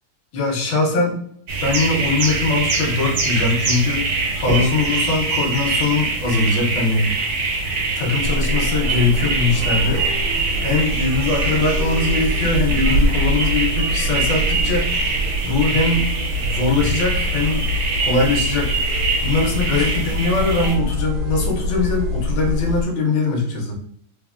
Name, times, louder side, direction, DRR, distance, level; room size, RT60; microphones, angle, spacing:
voice 1, 0.3-1.2 1.6-4.0 4.4-7.1 8.0-10.0 10.6-14.9 15.4-16.1 16.4-17.7 18.0-18.8 19.2-23.7, left 3 dB, 70° left, 0 dB, 1.4 m, -21 dB
sound 1, 1.5-20.7, right 3 dB, 65° right, 0.7 m, -24 dB
sound 2, 8.2-22.8, equal, 90° right, 1.4 m, -24 dB
3.5 x 2.1 x 2.3 m, 0.67 s
omnidirectional pair, 2.1 m